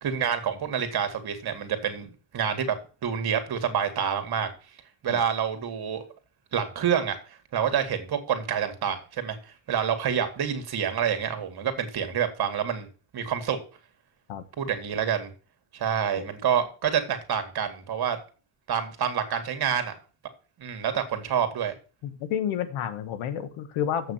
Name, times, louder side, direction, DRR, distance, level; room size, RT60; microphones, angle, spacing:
voice 1, 0.0-2.1 2.3-2.8 3.0-4.5 5.0-6.0 6.5-7.2 7.5-9.4 9.7-12.9 13.1-13.6 14.6-15.3 15.7-18.2 18.7-19.9 20.6-21.7, right 8 dB, 50° right, 8 dB, 2.0 m, -27 dB
voice 2, 22.0-24.1, left 9 dB, 85° left, 11 dB, 1.4 m, -30 dB
7.6 x 6.0 x 7.1 m, 0.37 s
cardioid pair, 115°, 48 cm